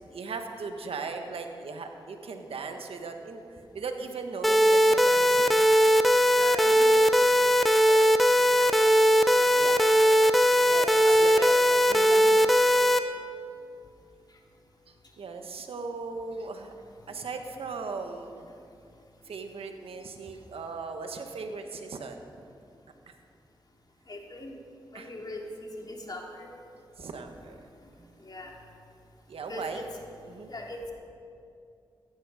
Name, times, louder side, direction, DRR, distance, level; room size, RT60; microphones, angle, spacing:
voice 1, 0.1-5.8 7.6-7.7 9.5-10.0 10.6-11.5 11.9-12.3 14.9-16.7 17.1-18.5 19.2-22.2 23.1-23.2 24.9-25.1 27.0-27.6 29.3-29.9 30.2-30.5, right 4 dB, 80° right, 5 dB, 1.4 m, -38 dB
sound 1, 4.4-13.0, equal, ahead, 0.9 m, -20 dB
voice 2, 6.4-7.3 7.9-8.0 8.6-9.0 9.3-9.5 9.7-10.2 10.5-10.7 11.0-11.6 11.9-12.8 24.1-24.5 24.9-26.5 28.2-28.6 29.5-29.8 30.5-30.8, left 2 dB, 45° left, -1 dB, 3.1 m, -41 dB
16.0 x 14.5 x 5.1 m, 2.5 s
cardioid pair, 55°, 10 cm